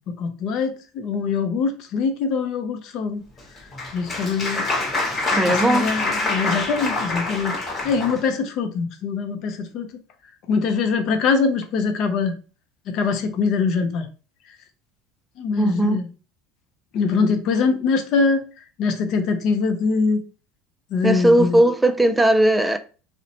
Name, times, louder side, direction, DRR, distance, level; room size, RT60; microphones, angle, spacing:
voice 1, 0.1-3.2 3.6-4.7 5.5-7.5 7.8-9.9 10.5-12.4 12.9-14.1 15.4-16.1 16.9-18.5 18.8-20.2 20.9-21.6, left 5 dB, 55° left, 0.5 m, -23 dB
Applause, 3.4-8.2, left 2 dB, 30° left, 1.1 m, -26 dB
voice 2, 5.3-5.9 15.6-16.0 21.0-22.8, right 1 dB, 5° right, 0.3 m, -18 dB
2.7 x 2.1 x 2.8 m
supercardioid pair, 120°, 0 cm